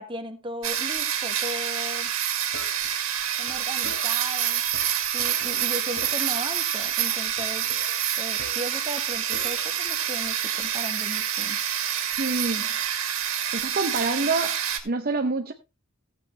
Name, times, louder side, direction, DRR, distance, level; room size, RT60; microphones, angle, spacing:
voice 1, 0.0-2.1 3.4-4.6 4.9-7.7 8.2-11.6, right 1 dB, 20° right, 6 dB, 1.3 m, -36 dB
sound 1, 0.6-14.8, right 10 dB, 65° right, 2.1 m, -27 dB
sound 2, 2.3-4.4 4.7-6.5 6.8-7.1 7.4-9.1 9.3-9.9, left 1 dB, 65° left, 3.4 m, -45 dB
voice 2, 12.2-12.7 13.5-14.6 14.8-15.5, right 3 dB, 40° right, 5 dB, 0.7 m, -26 dB
14.5 x 8.0 x 3.2 m, 0.29 s
head